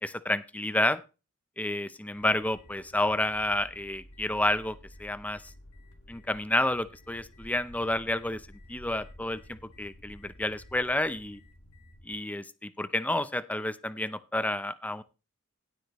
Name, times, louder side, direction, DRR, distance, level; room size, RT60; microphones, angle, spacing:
voice 1, 0.0-1.0 1.6-5.5 6.1-8.4 8.7-11.4 12.0-15.0, left 1 dB, 5° left, 14 dB, 0.6 m, -30 dB
sound 1, 2.1-12.1, left 1 dB, 85° left, 2.0 m, -52 dB
16.5 x 8.0 x 3.1 m, 0.30 s
head